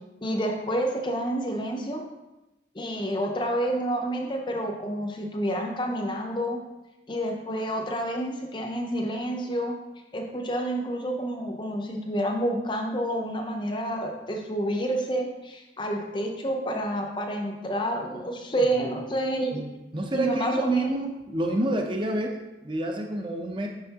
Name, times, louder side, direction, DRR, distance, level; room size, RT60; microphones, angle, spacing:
voice 1, 0.2-2.0 2.7-6.6 7.1-9.8 10.1-19.6 20.1-21.0, right 1 dB, 25° left, 2 dB, 0.6 m, -29 dB
voice 2, 19.9-23.7, right 1 dB, 25° right, 3 dB, 0.6 m, -28 dB
6.0 x 5.7 x 2.8 m, 1.0 s
head